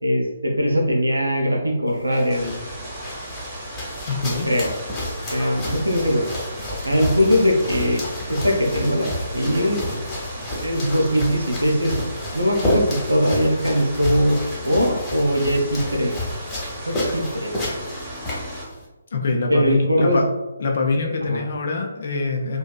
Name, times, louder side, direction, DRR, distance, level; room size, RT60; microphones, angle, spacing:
voice 1, 0.0-2.5 4.5-4.7 5.3-6.3 6.8-8.0 8.3-9.8 10.6-11.9 12.3-14.4 14.7-16.1 16.9-17.5 19.5-20.2 21.2-21.4, equal, 90° right, 1 dB, 0.5 m, -21 dB
sound 1, 1.9-18.8, left 1 dB, 20° left, 0.7 m, -31 dB
sound 2, 2.3-18.6, right 1 dB, 15° right, 1.0 m, -36 dB
voice 2, 4.0-4.5 19.1-20.3 20.6-22.6, left 3 dB, 55° left, 2 dB, 0.4 m, -24 dB
2.6 x 2.2 x 2.2 m, 1.1 s
figure-of-eight pair, 140°, 0 cm